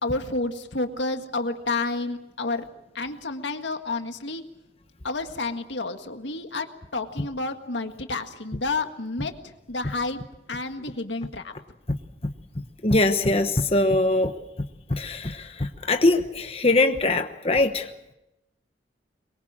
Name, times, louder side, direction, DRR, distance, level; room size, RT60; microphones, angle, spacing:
voice 1, 0.0-2.7 3.0-4.4 5.0-6.7 6.9-10.2 10.5-11.5, left 3 dB, 75° left, 6 dB, 1.8 m, -30 dB
voice 2, 12.8-14.3 14.9-17.9, left 2 dB, 35° left, 6 dB, 1.1 m, -22 dB
23.0 x 23.0 x 7.4 m, 0.90 s
head